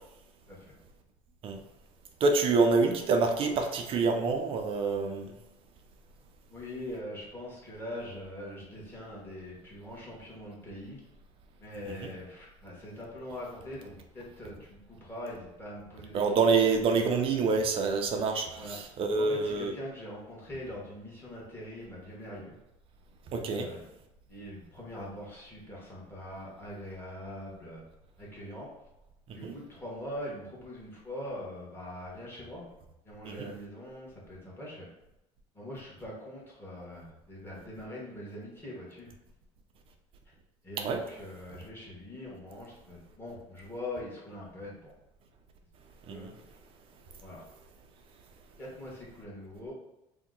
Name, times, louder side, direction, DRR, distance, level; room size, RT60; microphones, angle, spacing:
voice 1, 2.2-5.3 12.0-12.1 16.1-19.7 23.3-23.7 29.3-29.5 33.3-33.5 40.8-41.0 46.1-46.3, right 4 dB, 45° right, 4 dB, 0.5 m, -27 dB
voice 2, 6.5-11.0 11.6-16.7 18.5-22.6 23.5-23.9 24.3-27.8 28.2-28.7 29.3-32.7 33.0-34.9 35.5-39.1 40.6-44.9 46.1-46.3 47.2-47.4 48.6-49.7, left 1 dB, 15° left, -5 dB, 1.2 m, -42 dB
2.8 x 2.1 x 3.7 m, 0.92 s
cardioid pair, 130°, 13 cm